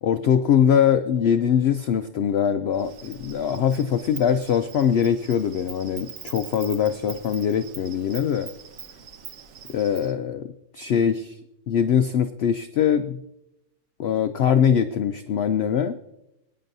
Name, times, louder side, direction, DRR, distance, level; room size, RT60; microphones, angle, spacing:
voice 1, 0.0-8.5 9.7-11.4 11.7-13.2 14.0-16.0, left 8 dB, 70° left, 9 dB, 0.6 m, -22 dB
Insect, 2.7-10.1, right 8 dB, 65° right, 1.2 m, -43 dB
22.0 x 9.6 x 2.7 m, 0.89 s
omnidirectional pair, 1.6 m